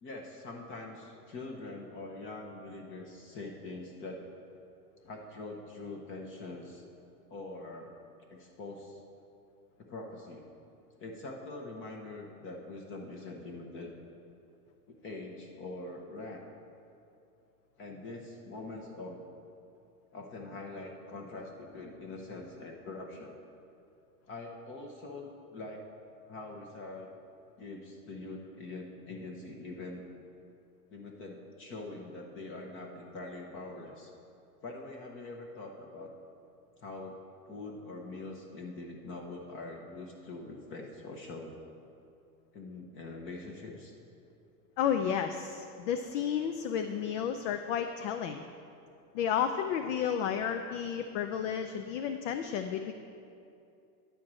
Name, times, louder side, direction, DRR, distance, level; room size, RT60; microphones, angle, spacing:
voice 1, 0.0-4.2 5.0-6.8 7.3-7.9 8.3-9.0 9.8-10.5 11.0-13.9 14.9-16.4 17.8-19.2 20.1-23.4 24.3-25.8 26.3-27.1 27.6-30.0 30.9-34.1 34.6-36.1 36.8-37.2 37.5-41.6 42.5-43.9, left 2 dB, 25° left, 1 dB, 0.8 m, -43 dB
voice 2, 44.8-48.4 49.1-52.9, left 8 dB, 55° left, 7 dB, 0.5 m, -32 dB
10.0 x 4.6 x 7.5 m, 2.6 s
supercardioid pair, 150°, 46 cm